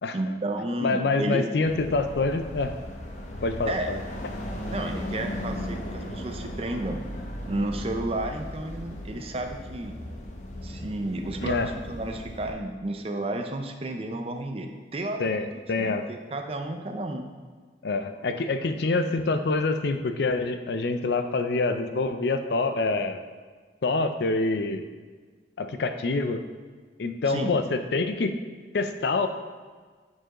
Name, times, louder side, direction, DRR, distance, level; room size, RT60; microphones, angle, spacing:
voice 1, 0.1-1.5 3.7-3.9 4.7-7.0 7.5-10.0 10.6-15.3 15.7-17.3 27.3-27.5, right 1 dB, 35° right, 5 dB, 0.5 m, -32 dB
voice 2, 0.8-2.7 3.4-4.0 11.4-11.7 15.2-16.1 17.8-23.2 23.8-24.9 25.6-26.4 27.0-28.4 28.7-29.3, left 3 dB, 70° left, 8 dB, 0.5 m, -26 dB
sound 1, 1.6-12.5, left 1 dB, 40° left, 0.8 m, -36 dB
8.7 x 4.7 x 3.0 m, 1.5 s
head